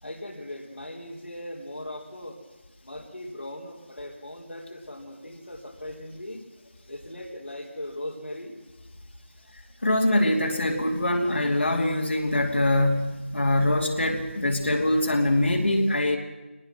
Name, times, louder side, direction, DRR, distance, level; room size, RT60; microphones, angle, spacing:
voice 1, 0.0-2.4 2.8-6.4 6.9-8.6, left 1 dB, 80° left, -5 dB, 4.0 m, -39 dB
voice 2, 9.8-16.2, left 1 dB, 60° left, 0 dB, 2.8 m, -23 dB
22.0 x 19.5 x 6.2 m, 1.1 s
figure-of-eight pair, 165°, 7 cm